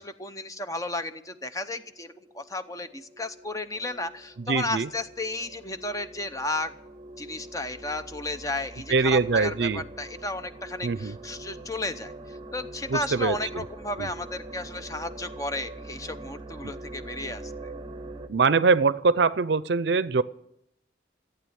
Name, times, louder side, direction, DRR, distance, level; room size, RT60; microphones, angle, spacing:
voice 1, 0.0-6.7 7.2-17.7, left 2 dB, 20° left, 10 dB, 0.8 m, -33 dB
sound 1, 1.7-18.3, right 2 dB, 25° right, 0.9 m, -44 dB
voice 2, 4.4-4.9 8.9-9.8 10.8-11.2 12.9-13.6 14.0-14.1 18.3-20.2, right 4 dB, 65° right, 17 dB, 0.5 m, -23 dB
14.5 x 8.9 x 9.4 m, 0.77 s
head